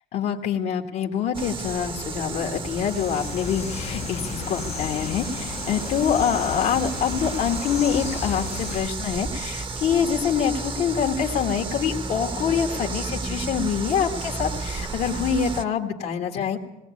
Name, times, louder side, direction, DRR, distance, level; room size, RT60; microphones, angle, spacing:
voice 1, 0.1-16.6, left 7 dB, 70° left, 2 dB, 1.6 m, -25 dB
sound 1, 1.3-15.6, right 3 dB, 30° right, 1.0 m, -32 dB
sound 2, 2.5-8.9, left 8 dB, 40° left, 0.7 m, -35 dB
19.5 x 18.0 x 8.4 m, 0.99 s
cardioid pair, 110°, 17 cm